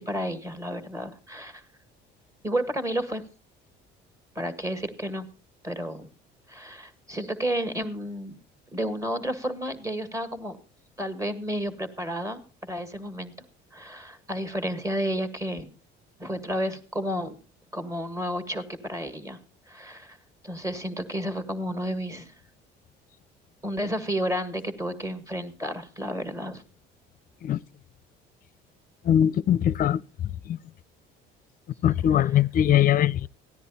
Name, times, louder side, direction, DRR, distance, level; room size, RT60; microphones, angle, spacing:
voice 1, 0.0-1.6 2.4-3.2 4.4-5.3 5.6-6.1 6.5-8.4 8.7-10.6 11.0-13.3 13.7-15.7 16.2-17.4 17.7-19.4 19.7-20.2 20.4-22.3 23.6-26.6, equal, 15° right, 1.8 m, -31 dB
voice 2, 29.0-30.0 30.5-30.6 31.8-33.3, left 10 dB, 45° left, 0.5 m, -21 dB
15.0 x 10.0 x 4.1 m
supercardioid pair, 90°, 20 cm